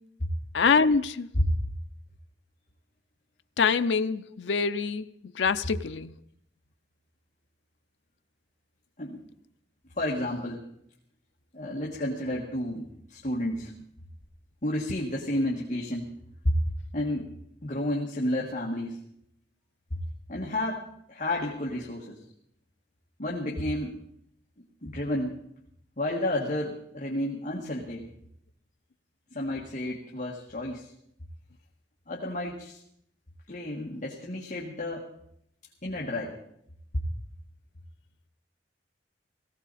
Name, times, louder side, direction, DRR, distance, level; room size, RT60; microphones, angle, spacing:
voice 1, 0.5-1.3 3.6-5.1 5.4-6.1, left 5 dB, 90° left, 0.5 m, -24 dB
voice 2, 9.9-10.7 11.5-13.7 14.6-16.1 16.4-16.6 16.9-17.3 17.6-19.0 20.3-22.2 23.2-23.9 24.8-25.3 26.0-28.1 29.3-30.9 32.1-32.8 33.5-35.1 35.8-36.4 36.9-37.0, left 1 dB, 45° left, 1.8 m, -31 dB
18.0 x 16.5 x 4.2 m
head